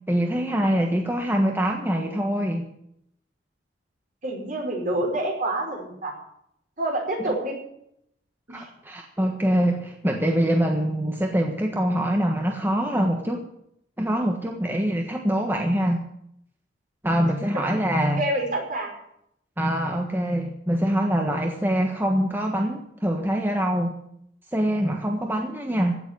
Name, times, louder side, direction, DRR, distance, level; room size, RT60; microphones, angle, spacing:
voice 1, 0.1-2.7 7.2-7.3 8.5-13.4 14.0-16.0 17.0-18.2 19.6-24.0 24.5-26.0, equal, 10° right, 2 dB, 1.4 m, -24 dB
voice 2, 4.2-6.2 6.8-7.6 8.5-8.6 18.2-19.0, right 1 dB, 50° right, 1 dB, 5.1 m, -27 dB
16.5 x 7.3 x 9.7 m, 0.74 s
head